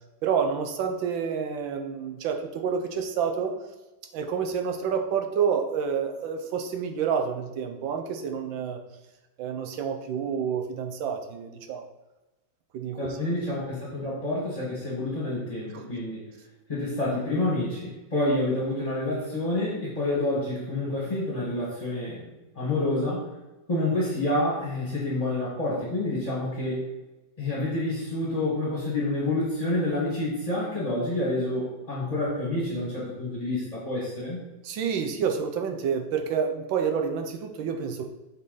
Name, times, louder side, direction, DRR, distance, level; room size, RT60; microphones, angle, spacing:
voice 1, 0.2-3.5 4.1-8.8 9.4-11.9 12.7-13.0 15.7-15.8 34.6-38.1, right 7 dB, 80° right, 5 dB, 1.5 m, -28 dB
voice 2, 13.0-16.2 16.7-22.3 22.5-23.3 23.7-26.9 27.4-34.4, left 2 dB, 20° left, -6 dB, 1.6 m, -28 dB
7.3 x 4.0 x 4.0 m, 1.1 s
omnidirectional pair, 2.2 m